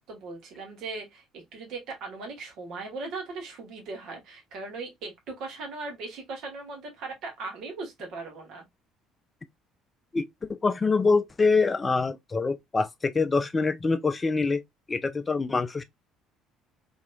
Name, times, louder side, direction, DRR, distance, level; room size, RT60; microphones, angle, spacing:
voice 1, 0.1-8.6, right 3 dB, 55° right, 1.1 m, -38 dB
voice 2, 10.1-14.6 14.9-15.8, left 4 dB, 25° left, 0.4 m, -25 dB
3.0 x 2.8 x 2.3 m
figure-of-eight pair, 55°, 0 cm